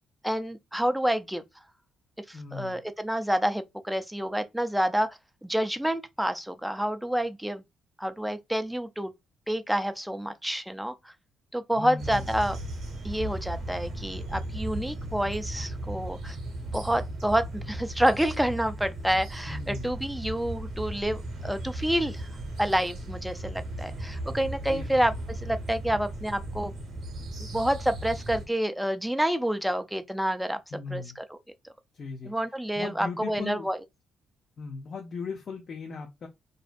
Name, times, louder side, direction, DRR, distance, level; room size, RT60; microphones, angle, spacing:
voice 1, 0.2-1.4 2.3-7.6 8.0-9.1 9.5-11.1 11.5-12.6 13.0-16.4 16.7-22.3 22.6-26.7 27.5-30.6 30.9-31.0 32.3-33.8, equal, 5° right, 0.4 m, -28 dB
voice 2, 2.3-2.8 11.7-12.3 19.5-19.9 24.7-24.9 30.7-31.2 31.9-32.3 32.8-33.7 34.6-36.3, left 4 dB, 50° left, 0.5 m, -37 dB
sound 1, 12.0-28.5, right 1 dB, 60° right, 0.8 m, -36 dB
2.5 x 2.1 x 2.4 m
cardioid pair, 90°, 0 cm